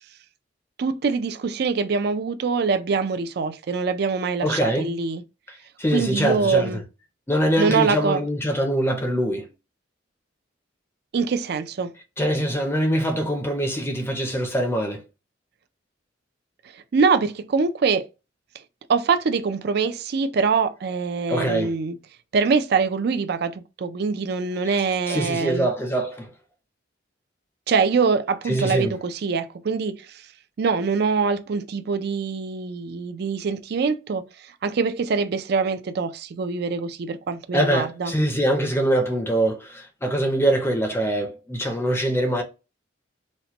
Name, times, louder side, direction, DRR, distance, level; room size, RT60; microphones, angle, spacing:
voice 1, 0.8-5.2 5.9-6.8 7.6-8.2 11.1-11.9 16.7-18.1 18.9-22.0 22.3-25.7 27.7-30.2 30.6-38.1, right 5 dB, 60° right, 0.4 m, -24 dB
voice 2, 4.4-4.9 5.8-6.8 7.3-9.5 12.2-15.0 21.3-21.7 25.1-26.3 28.5-28.9 37.5-42.4, right 1 dB, 15° left, 0.5 m, -23 dB
4.1 x 2.1 x 2.9 m
head